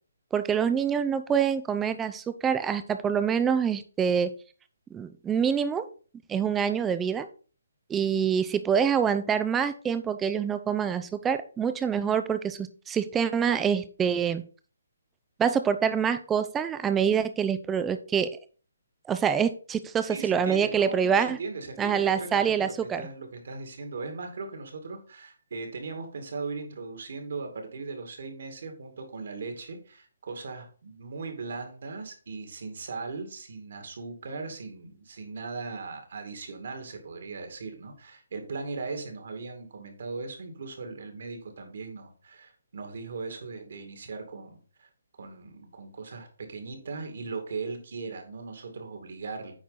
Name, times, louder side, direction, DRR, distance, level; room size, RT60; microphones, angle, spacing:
voice 1, 0.3-4.3 4.9-5.9 6.3-7.3 7.9-14.4 15.4-18.3 19.1-21.4 21.8-23.0, right 7 dB, 10° right, 10 dB, 0.5 m, -26 dB
voice 2, 20.1-44.9 45.2-49.5, right 4 dB, 60° right, 5 dB, 2.3 m, -38 dB
8.8 x 4.6 x 4.1 m, 0.40 s
hypercardioid pair, 155°, 0 cm